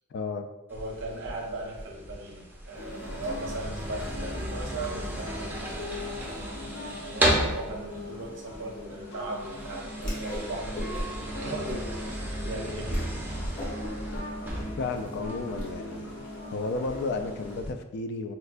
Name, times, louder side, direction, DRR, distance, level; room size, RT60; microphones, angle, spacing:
voice 1, 0.1-0.5 12.9-13.0 14.8-16.1 16.5-18.3, left 3 dB, 55° left, 7 dB, 0.3 m, -32 dB
sound 1, 0.7-17.7, right 1 dB, 10° right, 0.5 m, -35 dB
voice 2, 0.7-5.6 6.2-10.8 11.3-13.1, right 2 dB, 65° right, 0 dB, 0.6 m, -38 dB
sound 2, 2.7-17.6, left 1 dB, 70° left, 0.7 m, -40 dB
Whoosh swoosh swish, 10.0-10.5 10.7-11.3 11.6-12.1 12.5-12.6 12.9-13.1 13.4-15.6, equal, 40° left, 0.8 m, -35 dB
4.4 x 2.1 x 2.4 m, 0.97 s
head